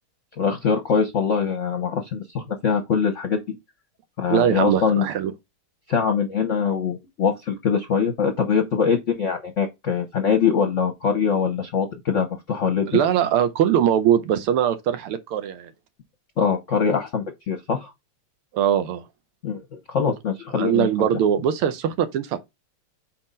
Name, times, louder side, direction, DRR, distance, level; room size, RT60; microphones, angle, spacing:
voice 1, 0.4-3.4 4.2-5.1 5.9-13.1 16.4-17.9 19.4-20.9, left 6 dB, 50° left, 0.9 m, -23 dB
voice 2, 4.3-5.3 12.9-15.7 18.5-19.0 20.6-22.4, right 9 dB, 85° right, 1.6 m, -21 dB
4.6 x 4.3 x 5.3 m
omnidirectional pair, 2.4 m